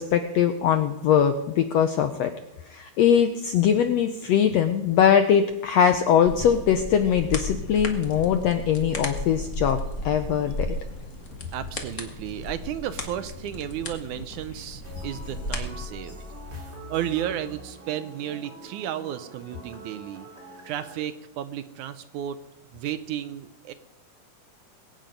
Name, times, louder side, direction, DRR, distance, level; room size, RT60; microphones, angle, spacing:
voice 1, 0.0-2.3 2.7-9.8 10.0-10.7, left 8 dB, 80° left, 7 dB, 1.5 m, -21 dB
sound 1, 6.3-15.9, left 1 dB, 40° left, 1.0 m, -35 dB
voice 2, 11.5-16.2 16.9-20.3 20.6-22.4 22.7-23.7, right 11 dB, 75° right, 12 dB, 2.0 m, -33 dB
sound 2, 14.8-21.1, equal, 20° right, 2.7 m, -43 dB
22.0 x 9.1 x 5.2 m, 0.94 s
omnidirectional pair, 3.9 m